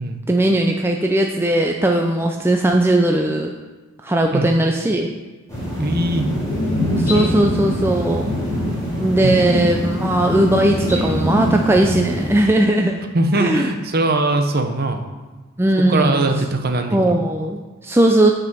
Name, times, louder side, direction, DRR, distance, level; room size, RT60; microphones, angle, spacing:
voice 1, 0.3-3.5 4.0-5.1 7.0-8.3 9.0-13.0 13.3-13.7 15.6-16.3 16.9-18.3, right 1 dB, 10° right, 2 dB, 0.4 m, -18 dB
sound 1, 5.5-12.4, equal, 15° left, 3.2 m, -23 dB
voice 2, 5.8-6.3 9.2-9.5 13.1-15.1 15.9-17.2, right 2 dB, 45° right, 6 dB, 0.8 m, -21 dB
8.5 x 5.2 x 6.1 m, 1.3 s
head